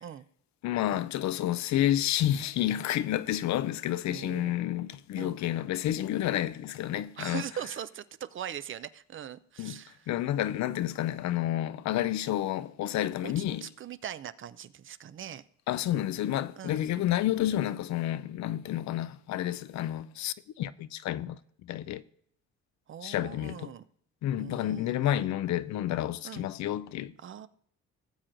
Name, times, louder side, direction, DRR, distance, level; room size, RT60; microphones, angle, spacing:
voice 1, 0.6-7.4 9.6-13.7 15.7-22.0 23.0-23.7 24.2-27.1, left 12 dB, 65° left, 0.4 m, -30 dB
voice 2, 4.1-4.6 5.2-5.4 7.2-10.1 13.2-15.4 16.6-16.8 22.9-23.8 24.4-25.1 26.2-26.5 27.2-27.5, right 9 dB, 45° right, 0.4 m, -41 dB
17.5 x 7.4 x 2.6 m
cardioid pair, 90°, 30 cm